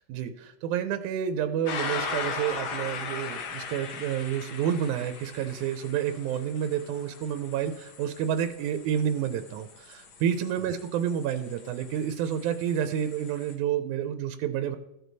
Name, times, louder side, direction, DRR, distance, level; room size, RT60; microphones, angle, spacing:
voice 1, 0.1-14.8, right 9 dB, 85° right, 9 dB, 2.1 m, -29 dB
sound 1, 1.7-13.5, left 5 dB, 55° left, 1.6 m, -39 dB
15.0 x 6.3 x 4.0 m, 0.83 s
omnidirectional pair, 3.4 m